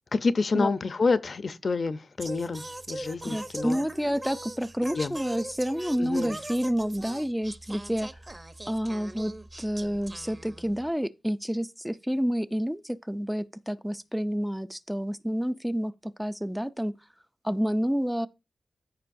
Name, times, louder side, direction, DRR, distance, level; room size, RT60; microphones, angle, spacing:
voice 1, 0.1-3.8 4.9-5.2 6.0-6.4, left 4 dB, 50° left, 0.6 m, -28 dB
Singing, 2.2-10.9, right 1 dB, 20° right, 0.7 m, -41 dB
voice 2, 3.3-8.1 8.7-9.3 9.6-16.9 17.4-18.3, equal, 5° right, 0.3 m, -29 dB
13.5 x 5.1 x 2.6 m
wide cardioid pair, 110°, 0 cm